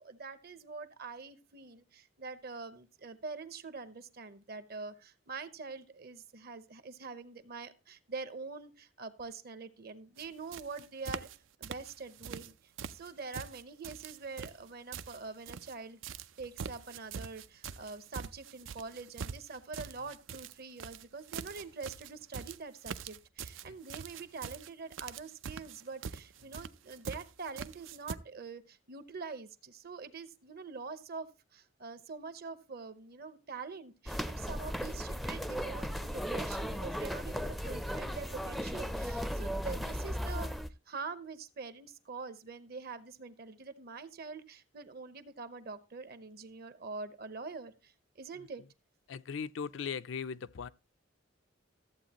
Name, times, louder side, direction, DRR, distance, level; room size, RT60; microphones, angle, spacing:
voice 1, 0.0-11.3 11.6-16.0 16.4-40.6 40.9-48.6, right 4 dB, 55° right, 0.8 m, -45 dB
sound 1, 10.2-10.3 10.5-11.4 11.6-12.5 12.8-15.7 16.0-28.2, right 6 dB, 90° right, 0.5 m, -44 dB
sound 2, 34.1-40.7, equal, ahead, 0.4 m, -36 dB
voice 2, 49.1-50.7, left 6 dB, 75° left, 0.4 m, -39 dB
14.0 x 8.0 x 2.9 m
head